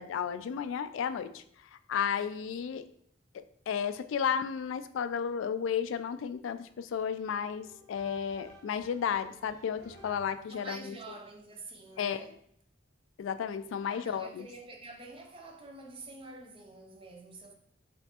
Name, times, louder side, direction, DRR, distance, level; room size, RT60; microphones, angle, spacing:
voice 1, 0.0-1.4 1.7-2.9 3.3-10.9 12.0-12.2 13.2-14.5, left 7 dB, 85° left, 0.3 m, -33 dB
sound 1, 7.3-10.6, right 1 dB, 15° left, 1.1 m, -53 dB
voice 2, 10.5-12.3 13.8-17.5, right 2 dB, 30° right, 0.6 m, -47 dB
5.1 x 3.3 x 2.8 m
head